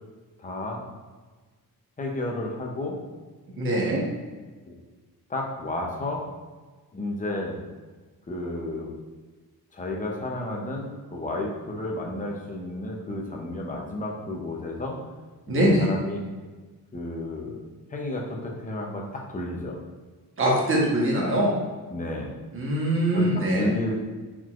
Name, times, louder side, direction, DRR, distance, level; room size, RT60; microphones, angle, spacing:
voice 1, 0.4-0.8 2.0-3.0 4.6-4.8 5.3-6.2 6.9-7.6 8.3-8.9 9.7-15.0 15.5-16.2 16.9-17.6 17.9-19.8 21.9-22.4 23.1-24.0, left 1 dB, 20° left, -1 dB, 0.7 m, -32 dB
voice 2, 3.6-4.0 15.5-15.9 20.4-21.5 22.5-23.7, right 1 dB, 35° right, -3 dB, 1.1 m, -22 dB
4.6 x 3.8 x 2.5 m, 1.3 s
cardioid pair, 125°, 37 cm